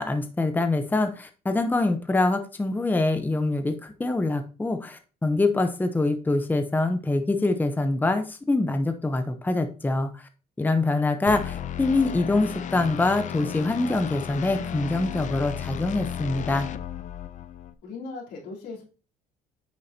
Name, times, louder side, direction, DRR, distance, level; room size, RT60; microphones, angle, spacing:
voice 1, 0.0-10.2 10.6-16.7, left 2 dB, 10° left, 7 dB, 0.8 m, -25 dB
sound 1, 11.3-17.7, left 9 dB, 45° left, 0.6 m, -34 dB
voice 2, 17.8-18.8, left 3 dB, 80° left, -3 dB, 3.4 m, -38 dB
9.4 x 6.3 x 2.8 m, 0.35 s
cardioid pair, 110°, 17 cm